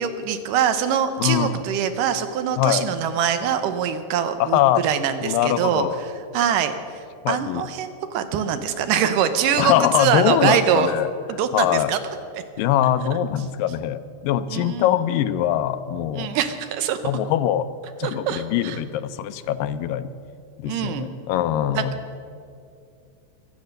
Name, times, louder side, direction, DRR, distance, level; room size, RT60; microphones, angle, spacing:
voice 1, 0.0-5.9 6.3-7.0 7.3-10.9 11.4-12.0 14.5-14.9 16.1-17.0 18.0-18.8 20.7-21.1 21.7-21.8, right 8 dB, 80° right, 9 dB, 2.4 m, -23 dB
voice 2, 1.2-1.6 2.6-2.9 4.4-4.8 5.2-6.0 7.2-7.6 9.6-11.1 11.5-11.9 12.6-16.3 17.0-17.7 18.0-20.1 20.6-21.9, left 11 dB, 85° left, 11 dB, 2.3 m, -22 dB
23.0 x 8.5 x 6.5 m, 2.4 s
omnidirectional pair, 3.9 m